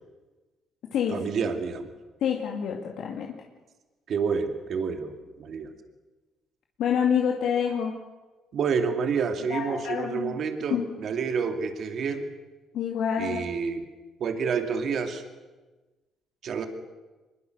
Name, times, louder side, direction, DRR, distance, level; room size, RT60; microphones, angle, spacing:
voice 1, 1.1-1.9 4.1-5.7 8.5-12.3 13.2-13.9 14.2-15.2 16.4-16.7, right 5 dB, 55° right, 6 dB, 2.4 m, -29 dB
voice 2, 2.2-3.4 6.8-7.9 9.5-10.3 10.7-10.9 12.7-13.4, left 8 dB, 70° left, 1 dB, 2.2 m, -27 dB
24.0 x 21.5 x 6.6 m, 1.2 s
cardioid pair, 115°, 0 cm